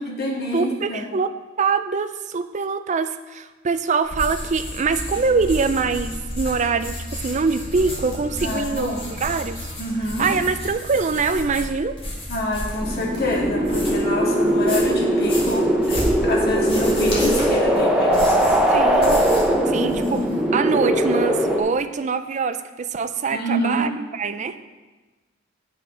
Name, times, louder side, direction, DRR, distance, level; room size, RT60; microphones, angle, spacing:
voice 1, 0.0-1.0 8.4-9.0 9.8-10.3 12.3-18.1 23.3-23.8, left 1 dB, 55° left, -2 dB, 1.9 m, -27 dB
voice 2, 0.5-1.3 1.6-8.9 9.2-9.7 10.2-12.0 18.7-19.2 19.7-24.6, right 4 dB, 40° right, 10 dB, 0.4 m, -24 dB
sound 1, 4.0-14.1 14.5-19.5 19.8-20.3, left 1 dB, 30° left, 2.4 m, -32 dB
sound 2, 5.1-10.7, equal, 75° right, 3.2 m, -38 dB
sound 3, 12.8-21.6, right 1 dB, 5° right, 0.9 m, -20 dB
8.8 x 6.1 x 4.9 m, 1.2 s
head